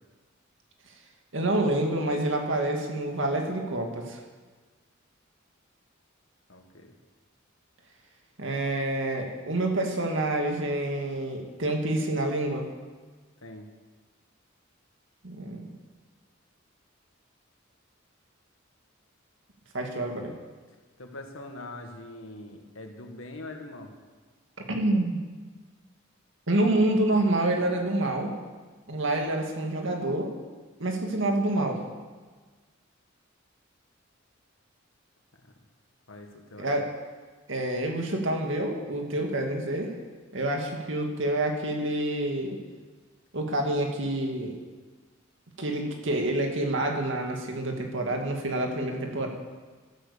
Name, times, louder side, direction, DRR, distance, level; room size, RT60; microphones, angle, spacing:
voice 1, 1.3-4.2 8.4-12.6 15.2-15.7 19.7-20.3 24.7-25.2 26.5-28.3 28.9-30.3 30.8-31.8 36.6-36.8 37.5-39.9 40.3-42.6 43.3-44.6 45.6-49.3, right 1 dB, 65° right, 2 dB, 2.1 m, -27 dB
voice 2, 6.5-6.9 13.4-13.7 21.0-23.9 35.4-35.5 36.1-36.8, left 2 dB, 75° left, 4 dB, 1.9 m, -43 dB
13.0 x 11.5 x 7.1 m, 1.4 s
head